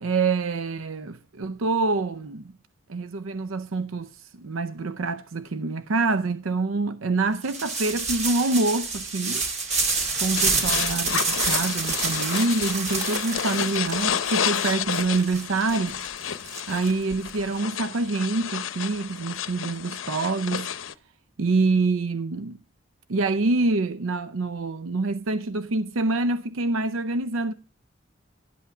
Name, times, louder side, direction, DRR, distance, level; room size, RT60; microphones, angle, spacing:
voice 1, 0.0-2.4 2.9-4.1 4.4-9.5 10.2-11.2 11.4-16.0 16.7-20.7 21.4-22.6 23.1-27.5, right 3 dB, 90° right, 0.6 m, -26 dB
sound 1, 7.4-17.3, right 4 dB, 35° right, 2.1 m, -28 dB
sound 2, 10.4-20.9, left 9 dB, 80° left, 0.7 m, -30 dB
11.5 x 8.2 x 4.9 m
head